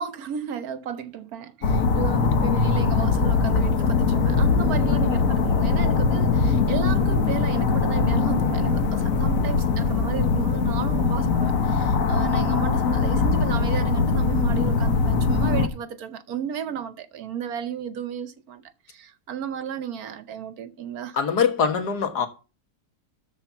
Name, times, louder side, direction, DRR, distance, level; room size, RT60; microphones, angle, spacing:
voice 1, 0.0-21.2, right 8 dB, 65° right, 1.2 m, -33 dB
sound 1, 1.6-15.7, left 4 dB, 55° left, 1.4 m, -21 dB
voice 2, 21.1-22.3, left 6 dB, 70° left, 2.0 m, -23 dB
13.0 x 4.4 x 6.9 m
omnidirectional pair, 1.8 m